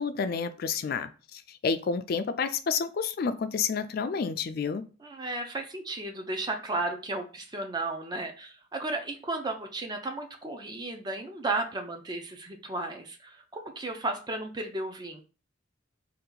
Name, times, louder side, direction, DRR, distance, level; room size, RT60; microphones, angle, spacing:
voice 1, 0.0-4.8, left 5 dB, 50° left, 0.3 m, -30 dB
voice 2, 5.0-15.2, right 2 dB, 20° right, 0.5 m, -34 dB
2.8 x 2.4 x 3.7 m
head